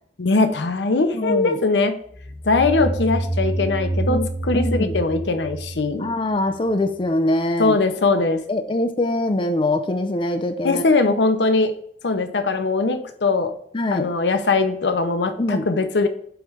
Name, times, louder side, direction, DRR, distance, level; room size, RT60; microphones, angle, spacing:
voice 1, 0.2-2.0 2.4-6.1 7.6-8.4 10.6-11.7 12.0-13.5 13.9-16.1, left 3 dB, 75° left, 8 dB, 0.7 m, -20 dB
voice 2, 1.1-1.6 4.1-4.3 4.5-5.0 6.0-7.8 8.1-8.2 8.5-10.8 13.7-14.1 15.4-15.7, left 1 dB, 30° left, 7 dB, 0.5 m, -23 dB
sound 1, 2.1-6.7, right 2 dB, 35° right, 1.3 m, -27 dB
7.9 x 3.2 x 4.9 m, 0.66 s
head